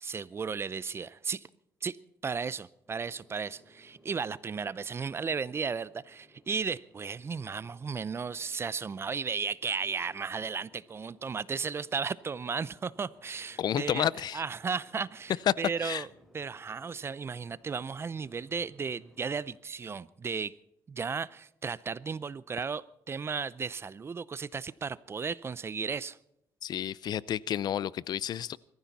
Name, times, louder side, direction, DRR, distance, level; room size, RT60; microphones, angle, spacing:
voice 1, 0.0-1.4 1.8-2.0 2.2-14.1 14.3-15.3 15.6-16.1 16.3-20.5 20.9-26.2, right 5 dB, 30° right, 0.6 m, -35 dB
Boat Water vehicle, 2.9-19.6, equal, ahead, 3.6 m, -62 dB
voice 2, 13.6-14.4 15.5-15.6 15.8-16.0 26.6-28.6, left 10 dB, 55° left, 0.5 m, -30 dB
22.0 x 14.5 x 4.1 m
cardioid pair, 110°, 8 cm